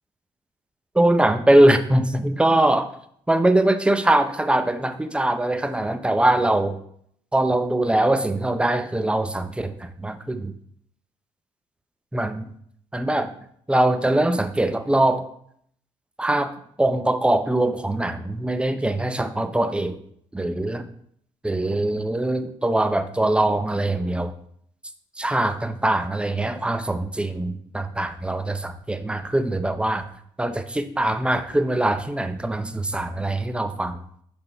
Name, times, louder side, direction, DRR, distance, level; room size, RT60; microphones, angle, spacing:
voice 1, 1.0-2.9 3.3-6.8 7.3-10.5 12.1-12.4 12.9-13.3 13.7-15.2 16.2-16.5 16.8-20.0 20.3-20.9 21.4-24.3 25.2-30.1 30.4-34.0, right 1 dB, 10° right, 9 dB, 0.6 m, -22 dB
5.6 x 3.4 x 5.4 m, 0.67 s
supercardioid pair, 65°, 12 cm